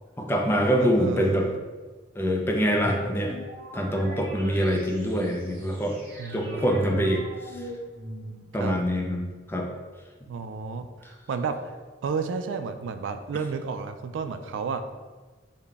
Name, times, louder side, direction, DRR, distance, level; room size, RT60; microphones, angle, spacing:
voice 1, 0.2-1.5 2.2-3.4 3.7-6.0 6.3-7.2 8.5-9.7, equal, 10° left, 0 dB, 0.4 m, -25 dB
voice 2, 0.8-1.6 6.2-7.2 8.5-8.8 10.3-11.7 12.0-14.8, right 5 dB, 85° right, 9 dB, 0.3 m, -32 dB
sound 1, 2.4-8.7, right 1 dB, 55° right, 0.8 m, -41 dB
3.9 x 2.1 x 3.4 m, 1.3 s
head